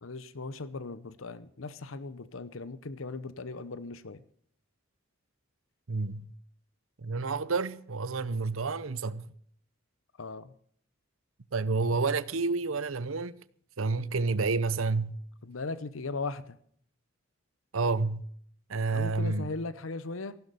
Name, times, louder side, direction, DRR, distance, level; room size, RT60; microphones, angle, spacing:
voice 1, 0.0-4.2 10.2-10.5 15.4-16.6 18.8-20.4, left 3 dB, 75° left, 0.9 m, -38 dB
voice 2, 5.9-6.3 7.0-9.2 11.5-13.3 13.8-15.2 17.7-18.2 18.7-19.5, right 4 dB, 85° right, 0.8 m, -29 dB
15.5 x 12.0 x 6.8 m
head